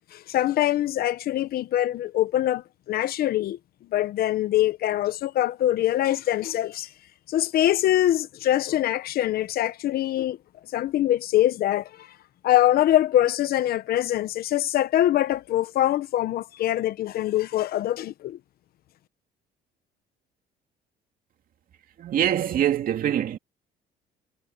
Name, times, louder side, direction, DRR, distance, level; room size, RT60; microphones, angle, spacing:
voice 1, 0.1-3.6 3.9-6.9 7.3-10.4 10.7-12.1 12.4-18.4, left 13 dB, 65° left, 0.9 m, -23 dB
voice 2, 22.0-23.4, right 10 dB, 55° right, 2.4 m, -24 dB
cardioid pair, 110°, 17 cm